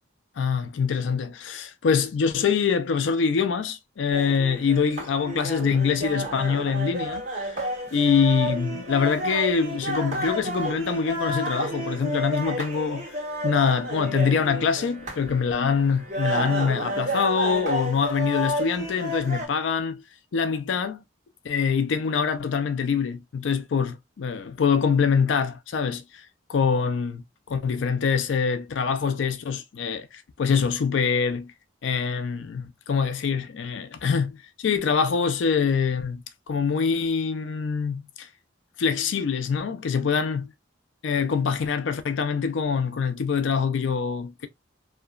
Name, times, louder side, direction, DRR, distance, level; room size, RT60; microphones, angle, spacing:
voice 1, 0.4-7.6 7.9-13.2 13.4-20.0 20.3-21.0 21.4-26.2 26.5-31.5 31.8-38.3 38.8-40.5 41.0-44.5, left 6 dB, 70° left, 0.4 m, -24 dB
sound 1, 4.1-19.5, equal, 35° right, 1.4 m, -31 dB
2.8 x 2.3 x 2.3 m
head